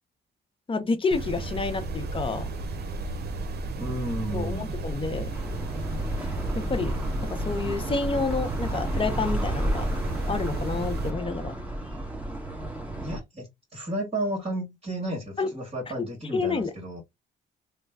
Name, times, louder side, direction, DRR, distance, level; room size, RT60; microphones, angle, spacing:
voice 1, 0.7-2.5 4.3-5.3 6.6-6.9 7.3-9.9 10.3-11.5 15.4-15.5 16.3-16.7, left 4 dB, 25° left, 0.8 m, -29 dB
sound 1, 1.1-11.1, right 2 dB, 55° right, 0.8 m, -33 dB
voice 2, 3.8-4.7 13.0-17.0, right 1 dB, 30° right, 1.9 m, -33 dB
sound 2, 5.3-13.2, right 1 dB, 5° right, 1.4 m, -32 dB
3.1 x 2.2 x 3.6 m
cardioid pair, 90°, 20 cm